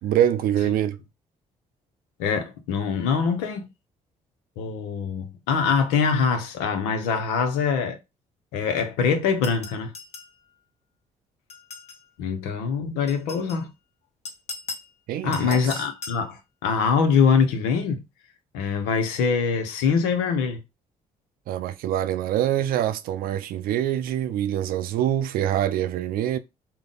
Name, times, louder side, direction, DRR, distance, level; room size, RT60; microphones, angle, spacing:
voice 1, 0.0-1.0 15.1-15.8 21.5-26.4, right 11 dB, 70° right, 0.5 m, -25 dB
voice 2, 2.2-3.6 4.6-8.0 8.5-9.9 12.2-13.7 15.2-18.0 18.5-20.6, left 6 dB, 85° left, 0.7 m, -23 dB
sound 1, 9.4-10.4 11.5-12.1 13.1-13.6 14.3-14.9 15.3-16.3, left 4 dB, 45° left, 0.9 m, -38 dB
3.5 x 2.2 x 3.9 m
hypercardioid pair, 55°, 16 cm